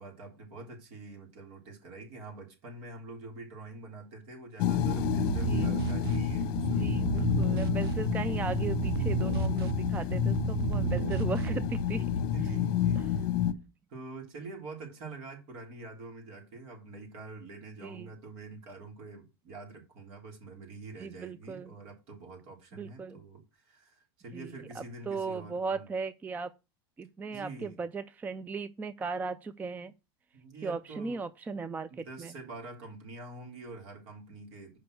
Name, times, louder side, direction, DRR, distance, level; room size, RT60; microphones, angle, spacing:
voice 1, 0.0-7.5 12.2-13.1 13.9-25.8 27.3-27.8 30.3-31.2 31.9-34.8, right 3 dB, 55° right, 3.3 m, -46 dB
sound 1, 4.6-13.5, left 9 dB, 60° left, 0.9 m, -29 dB
sound 2, 4.8-11.8, right 9 dB, 75° right, 0.6 m, -33 dB
voice 2, 6.8-12.1 17.8-18.1 21.0-21.7 22.7-23.2 24.3-26.5 27.0-29.9 30.6-32.3, right 4 dB, 15° right, 0.3 m, -37 dB
6.1 x 5.2 x 6.3 m
supercardioid pair, 120°, 13 cm